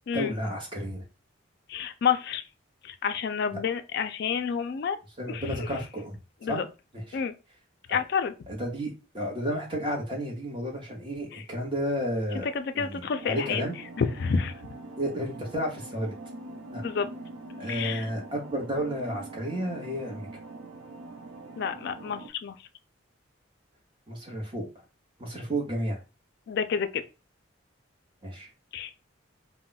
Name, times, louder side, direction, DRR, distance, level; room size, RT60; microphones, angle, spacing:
voice 1, 0.1-1.0 3.5-3.6 5.2-6.2 6.4-6.6 6.9-7.2 7.9-8.0 8.5-12.5 12.7-13.8 15.0-16.1 16.7-16.8 17.6-20.4 24.1-24.6 25.2-26.0 28.2-28.5, equal, 25° right, 0.8 m, -32 dB
voice 2, 1.7-2.4 2.8-5.0 5.3-5.4 6.4-6.7 7.1-7.3 7.9-8.3 11.3-11.4 12.5-13.6 14.0-14.5 16.8-17.1 17.7-18.1 21.6-22.5 26.5-27.0 28.7-29.0, left 6 dB, 55° left, 0.3 m, -29 dB
sound 1, 13.1-22.3, right 2 dB, 80° right, 0.4 m, -43 dB
2.3 x 2.1 x 3.8 m
head